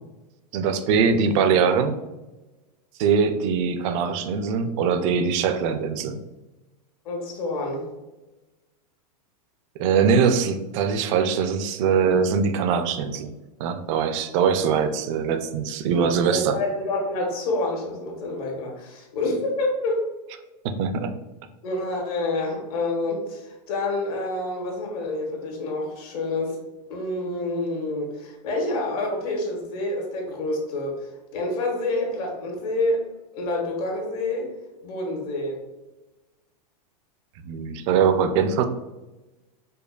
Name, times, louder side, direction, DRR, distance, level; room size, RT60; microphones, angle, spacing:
voice 1, 0.5-1.9 3.0-6.2 9.8-13.3 13.6-16.6 20.6-21.2 37.5-38.6, right 6 dB, 45° right, 9 dB, 0.4 m, -22 dB
voice 2, 7.0-7.8 16.3-20.1 21.6-26.6 26.9-31.1 31.3-33.0 33.3-34.5 34.8-35.6, left 2 dB, 65° left, 0 dB, 1.3 m, -28 dB
5.1 x 2.2 x 2.4 m, 1.1 s
supercardioid pair, 140°, 21 cm